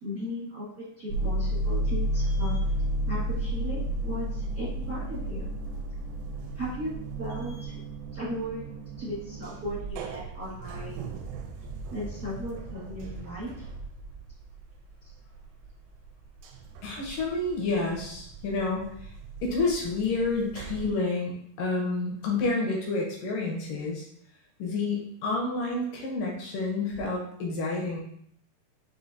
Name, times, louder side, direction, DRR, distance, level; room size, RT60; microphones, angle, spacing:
voice 1, 0.0-2.6 3.1-5.5 6.5-7.7 8.1-8.6 9.0-10.9 11.9-13.7, left 1 dB, 65° right, -12 dB, 0.8 m, -36 dB
sound 1, 1.1-15.7 16.1-20.9, right 1 dB, 85° right, 2.7 m, -33 dB
voice 2, 16.8-19.1 19.4-24.1 24.6-28.0, left 3 dB, 75° left, -2 dB, 2.1 m, -29 dB
6.5 x 2.7 x 2.7 m, 0.69 s
omnidirectional pair, 4.7 m